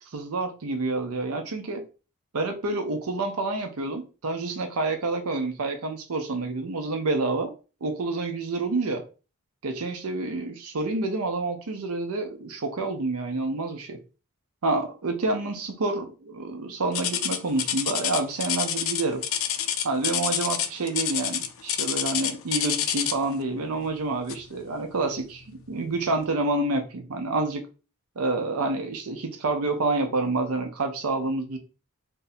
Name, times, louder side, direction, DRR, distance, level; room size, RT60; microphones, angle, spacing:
voice 1, 0.1-1.8 2.3-7.5 7.8-9.0 9.6-14.0 14.6-19.2 19.8-27.7 28.2-31.6, right 3 dB, 80° right, 0.7 m, -28 dB
sound 1, 16.9-23.3 24.3-24.5 25.1-25.2 25.9-26.0, left 10 dB, 65° left, 0.4 m, -27 dB
2.7 x 2.6 x 4.0 m
head